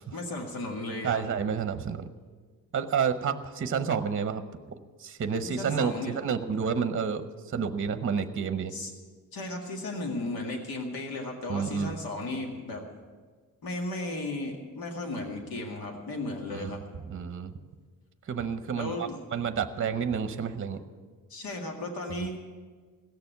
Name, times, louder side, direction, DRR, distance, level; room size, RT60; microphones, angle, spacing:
voice 1, 0.1-1.3 5.4-6.2 8.7-8.9 9.3-12.8 13.6-16.8 18.7-19.2 21.3-22.4, left 2 dB, 85° left, 1 dB, 2.1 m, -35 dB
voice 2, 1.0-2.0 2.7-4.4 5.0-8.7 11.5-11.9 16.5-16.8 17.1-17.5 18.3-20.8, right 6 dB, 35° right, 10 dB, 0.8 m, -30 dB
17.0 x 6.9 x 9.2 m, 1.5 s
wide cardioid pair, 135°, 35 cm